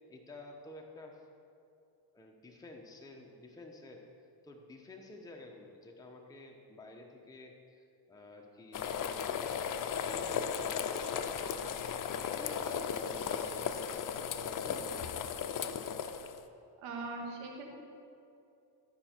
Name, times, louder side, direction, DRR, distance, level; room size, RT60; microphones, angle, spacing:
voice 1, 0.1-1.3 2.1-4.0 4.4-9.0 9.3-11.9 12.4-13.9 14.3-15.3, left 2 dB, 5° left, 1 dB, 0.9 m, -51 dB
sound 1, 8.7-16.4, left 7 dB, 40° left, 0.6 m, -36 dB
voice 2, 16.8-17.8, right 3 dB, 90° right, 1 dB, 1.6 m, -41 dB
12.5 x 5.5 x 4.4 m, 2.6 s
supercardioid pair, 80°, 50 cm